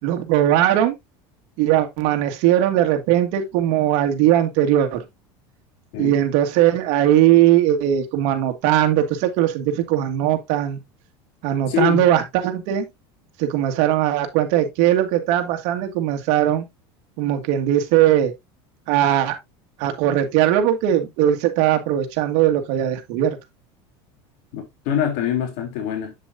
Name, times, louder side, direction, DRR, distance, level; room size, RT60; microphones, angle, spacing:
voice 1, 0.0-0.9 1.6-5.0 6.0-10.8 11.4-12.9 13.4-16.6 17.2-18.3 18.9-19.4 19.8-23.4, right 12 dB, 65° right, 2.0 m, -19 dB
voice 2, 11.7-12.1 24.5-26.1, left 8 dB, 65° left, 3.1 m, -24 dB
8.3 x 7.4 x 2.6 m
supercardioid pair, 115°, 14 cm